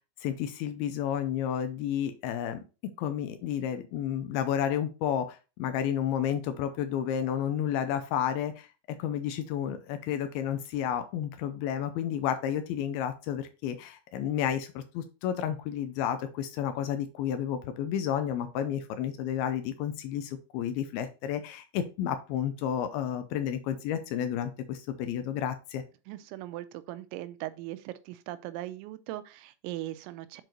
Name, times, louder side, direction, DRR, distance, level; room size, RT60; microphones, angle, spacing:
voice 1, 0.2-8.7 9.0-25.8, left 9 dB, 85° left, 2.2 m, -31 dB
voice 2, 26.1-30.4, right 15 dB, 90° right, 2.9 m, -39 dB
7.8 x 4.6 x 2.9 m
omnidirectional pair, 5.1 m